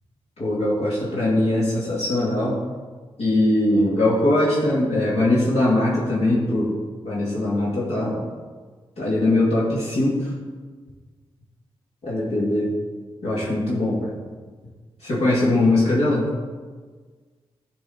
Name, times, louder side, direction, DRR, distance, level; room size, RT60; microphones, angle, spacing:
voice 1, 0.4-2.6 3.2-6.7 7.0-8.2 9.0-10.3 12.0-12.7 13.2-14.2 15.0-16.3, left 1 dB, 75° left, -7 dB, 2.2 m, -21 dB
11.0 x 5.2 x 3.9 m, 1.5 s
cardioid pair, 55°, 11 cm